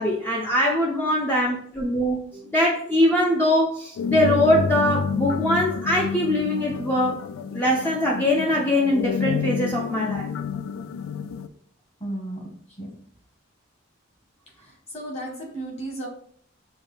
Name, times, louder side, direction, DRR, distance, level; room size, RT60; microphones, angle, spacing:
voice 1, 0.0-7.2 7.5-10.3, left 1 dB, 10° left, -3 dB, 0.4 m, -22 dB
sound 1, 4.0-11.5, left 6 dB, 90° left, 0.3 m, -29 dB
voice 2, 12.0-12.9 14.5-16.1, right 1 dB, 30° left, -2 dB, 1.4 m, -35 dB
6.2 x 2.2 x 3.4 m, 0.62 s
head